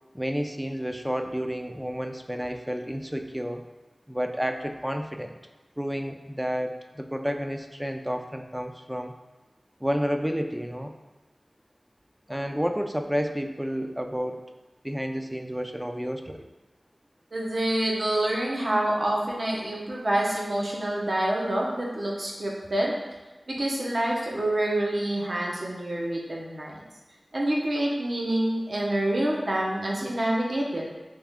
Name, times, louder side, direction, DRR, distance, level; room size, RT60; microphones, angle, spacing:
voice 1, 0.1-3.7 4.1-5.4 5.8-9.1 9.8-10.9 12.3-14.5 14.8-16.5, equal, 5° right, 5 dB, 0.4 m, -30 dB
voice 2, 17.3-22.9 23.5-26.8 27.3-30.8, right 1 dB, 65° right, -3 dB, 0.8 m, -27 dB
3.5 x 3.1 x 3.5 m, 1.2 s
wide cardioid pair, 50°, 0 cm